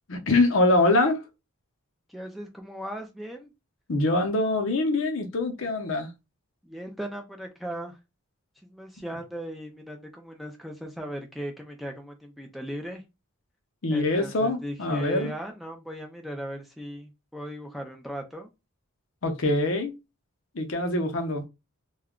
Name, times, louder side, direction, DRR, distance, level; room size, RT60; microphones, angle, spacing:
voice 1, 0.1-1.2 3.9-6.1 13.8-15.3 19.2-19.9 20.5-21.5, left 2 dB, 60° left, 0.7 m, -24 dB
voice 2, 2.1-3.5 6.6-8.0 8.6-13.0 13.9-18.5, right 1 dB, ahead, 0.4 m, -37 dB
2.3 x 2.2 x 3.6 m
head